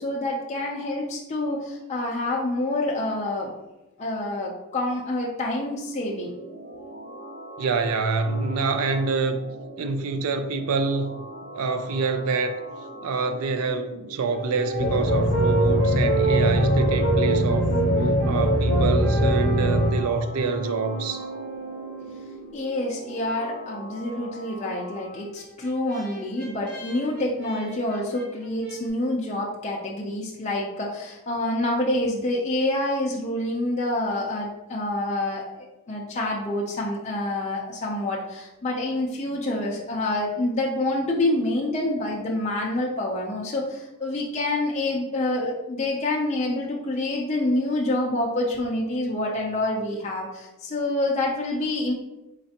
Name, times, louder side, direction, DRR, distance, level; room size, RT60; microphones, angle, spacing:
voice 1, 0.0-3.5 4.0-6.3 22.5-51.9, left 1 dB, 30° left, 0.4 m, -27 dB
sound 1, 5.3-25.2, right 1 dB, 35° right, 0.6 m, -42 dB
voice 2, 7.6-9.4 9.8-11.3 11.5-12.5 13.0-17.7 18.3-21.2, right 4 dB, 75° right, 0.4 m, -26 dB
Brass instrument, 14.3-22.6 25.1-28.8, right 4 dB, 50° right, 1.1 m, -31 dB
sound 2, 14.8-19.9, equal, 70° left, 0.8 m, -21 dB
3.9 x 3.2 x 2.8 m
head